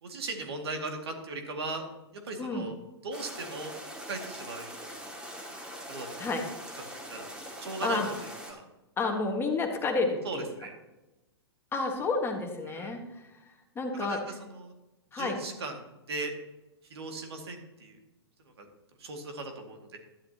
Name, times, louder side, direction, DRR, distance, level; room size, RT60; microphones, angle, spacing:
voice 1, 0.0-1.9 2.1-2.7 3.0-3.7 4.1-4.7 5.9-6.3 7.1-7.3 7.6-8.6 10.2-10.7 12.6-13.0 13.9-14.7 15.1-15.8 16.1-16.3 16.9-18.0 18.6-18.7 19.0-20.0, right 3 dB, 70° right, 3 dB, 2.2 m, -38 dB
sound 1, 3.1-8.5, equal, 5° right, 2.2 m, -42 dB
voice 2, 9.0-10.5 11.7-13.2 13.7-14.2 15.1-15.4, left 3 dB, 15° left, 3 dB, 1.6 m, -30 dB
12.5 x 11.5 x 2.9 m, 1.0 s
hypercardioid pair, 115°, 14 cm